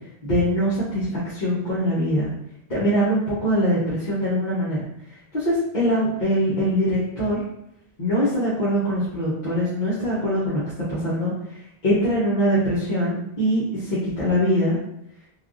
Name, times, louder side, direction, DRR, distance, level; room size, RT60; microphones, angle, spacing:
voice 1, 0.2-2.3 2.7-4.8 5.3-7.4 8.0-10.6 10.9-11.6 11.8-14.8, equal, 45° left, -10 dB, 0.9 m, -22 dB
3.3 x 2.4 x 2.4 m, 0.80 s
omnidirectional pair, 1.1 m